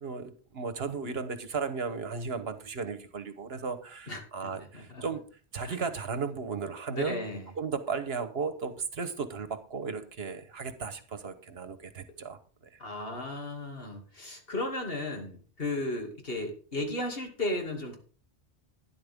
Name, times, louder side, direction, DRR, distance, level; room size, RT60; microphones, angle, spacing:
voice 1, 0.0-5.2 5.5-7.2 7.6-12.4, right 5 dB, 65° right, 10 dB, 1.3 m, -35 dB
voice 2, 4.1-5.1 5.6-5.8 6.9-7.5 12.8-18.0, left 2 dB, 55° left, 2 dB, 2.7 m, -35 dB
12.0 x 10.5 x 3.6 m, 0.40 s
omnidirectional pair, 1.1 m